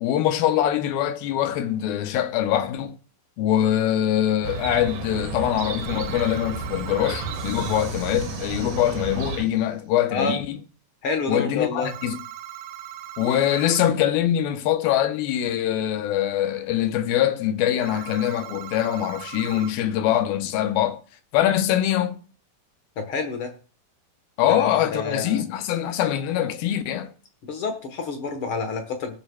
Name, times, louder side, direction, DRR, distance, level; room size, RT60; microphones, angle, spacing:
voice 1, 0.0-3.0 3.4-10.6 11.3-12.2 13.2-21.0 21.3-22.2 24.4-27.1, left 11 dB, 85° left, 2.7 m, -23 dB
Chirp tweet, 4.4-9.4, right 4 dB, 60° right, 2.2 m, -32 dB
sound 1, 5.8-7.9 11.8-13.9 17.8-19.7, right 12 dB, 80° right, 2.0 m, -39 dB
sound 2, 7.3-9.8, right 5 dB, 40° right, 2.7 m, -45 dB
voice 2, 11.0-11.9 23.0-23.5 24.5-24.7 24.9-25.4 27.4-29.1, left 3 dB, 60° left, 1.5 m, -28 dB
20.0 x 7.3 x 2.3 m
omnidirectional pair, 4.2 m